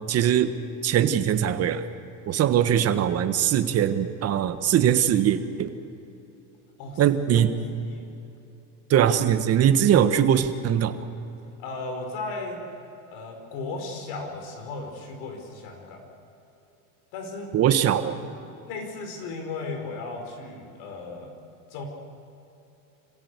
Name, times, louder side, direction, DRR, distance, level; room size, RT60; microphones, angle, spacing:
voice 1, 0.1-0.5 0.8-1.9 2.3-5.7 7.0-7.5 8.9-11.0 17.5-18.2, right 9 dB, 35° right, 9 dB, 1.4 m, -21 dB
voice 2, 7.7-8.1 11.6-12.6 13.1-16.0 17.1-17.7 18.2-18.3 18.7-21.3 21.7-21.8, left 3 dB, 60° left, 4 dB, 5.2 m, -36 dB
26.0 x 16.5 x 8.3 m, 2.9 s
supercardioid pair, 130°, 43 cm